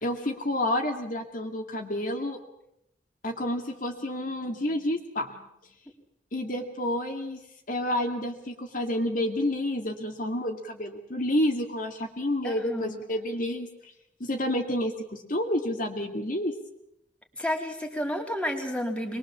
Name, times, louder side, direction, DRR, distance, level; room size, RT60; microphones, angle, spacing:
voice 1, 0.0-2.4 3.2-5.5 6.3-7.4 7.7-13.7 14.2-16.5, left 1 dB, 50° left, 3 dB, 2.3 m, -29 dB
voice 2, 12.4-13.0 17.4-19.2, equal, 5° left, 2 dB, 3.2 m, -31 dB
23.5 x 21.5 x 7.4 m, 0.80 s
head